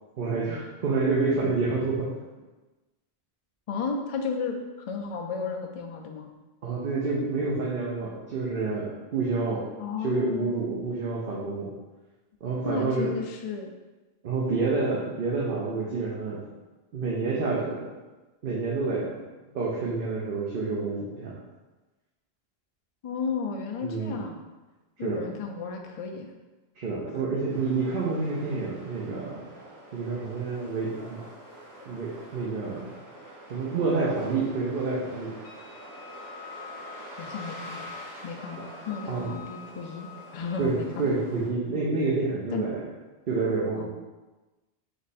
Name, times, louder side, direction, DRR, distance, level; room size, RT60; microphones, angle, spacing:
voice 1, 0.2-2.1 6.6-9.7 10.0-11.7 12.4-13.1 14.2-16.4 16.9-17.9 18.4-19.2 19.5-21.3 23.8-24.2 25.0-25.2 26.8-29.4 29.9-31.2 31.8-33.0 33.5-35.3 39.1-39.3 40.6-42.8 43.3-43.8, right 3 dB, 60° right, -5 dB, 0.9 m, -28 dB
voice 2, 3.7-4.6 4.9-6.3 9.8-10.7 12.6-13.7 23.0-24.4 25.0-26.3 27.1-27.2 37.2-37.9 38.2-41.1 42.5-42.7 43.7-43.8, left 4 dB, 60° left, 3 dB, 0.4 m, -33 dB
sound 1, 27.5-41.5, right 1 dB, 20° right, 0.7 m, -46 dB
Wind instrument woodwind instrument, 35.4-40.8, left 9 dB, 75° left, 1.0 m, -46 dB
3.4 x 3.2 x 4.1 m, 1.2 s
omnidirectional pair, 1.1 m